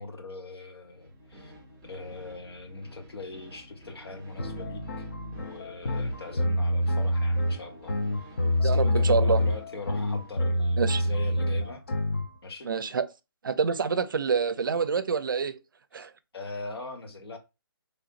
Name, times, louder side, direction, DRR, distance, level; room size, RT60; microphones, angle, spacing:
voice 1, 0.0-1.5 1.9-5.0 5.4-8.3 8.6-11.8 12.4-12.7 15.9-16.1 16.3-17.4, left 3 dB, 90° left, 1.2 m, -41 dB
sound 1, 0.8-10.4, equal, 5° left, 0.7 m, -51 dB
sound 2, 4.4-12.3, left 1 dB, 40° left, 0.6 m, -26 dB
voice 2, 8.6-9.4 10.8-11.0 12.6-13.1 13.4-15.6 15.9-16.1, right 6 dB, 55° right, 0.5 m, -27 dB
3.9 x 3.3 x 2.4 m
hypercardioid pair, 175°, 13 cm